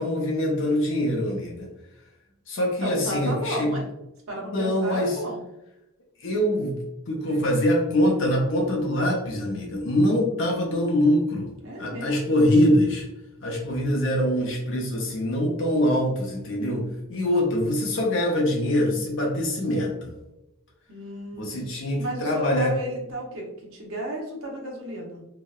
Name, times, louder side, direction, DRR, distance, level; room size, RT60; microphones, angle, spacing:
voice 1, 0.0-1.7 2.5-3.7 4.5-5.2 6.2-6.8 7.1-11.5 11.8-13.0 13.4-20.1 21.3-22.7, left 1 dB, 65° left, -1 dB, 0.5 m, -24 dB
voice 2, 2.8-3.9 4.3-5.4 7.2-7.4 11.6-12.5 20.9-21.6 22.0-25.3, right 1 dB, 70° right, -1 dB, 0.7 m, -33 dB
2.8 x 2.0 x 2.3 m, 0.91 s
head